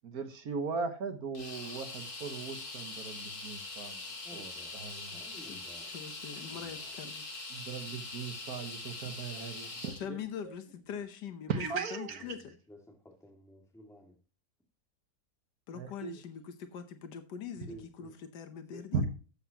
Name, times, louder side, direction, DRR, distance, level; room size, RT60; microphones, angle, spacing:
voice 1, 0.0-3.9 4.3-5.1 7.5-10.2 11.5-12.2 15.7-16.1 18.9-19.0, right 5 dB, 65° right, 1.7 m, -38 dB
sound 1, 1.3-10.0, left 3 dB, 65° left, 2.9 m, -43 dB
voice 2, 4.2-4.7 5.1-5.9 6.3-6.9 12.1-14.2 17.7-18.1 18.7-18.9, equal, ahead, 2.1 m, -53 dB
voice 3, 5.5-7.3 9.9-12.6 15.7-19.1, left 7 dB, 90° left, 1.6 m, -43 dB
12.5 x 8.0 x 2.9 m
omnidirectional pair, 1.8 m